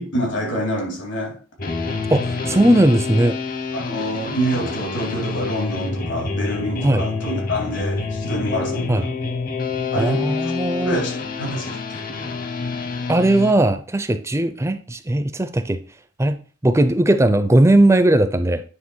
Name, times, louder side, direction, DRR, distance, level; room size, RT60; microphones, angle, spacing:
voice 1, 0.0-1.4 3.7-9.0 9.9-10.5 10.8-12.0, equal, 70° left, 3.5 m, -26 dB
sound 1, 1.6-13.5, left 4 dB, 45° left, 1.2 m, -27 dB
voice 2, 2.1-3.4 6.8-7.0 8.9-9.0 9.9-11.0 13.1-15.8 16.2-18.6, right 1 dB, 15° right, 0.5 m, -18 dB
9.6 x 3.4 x 6.2 m
head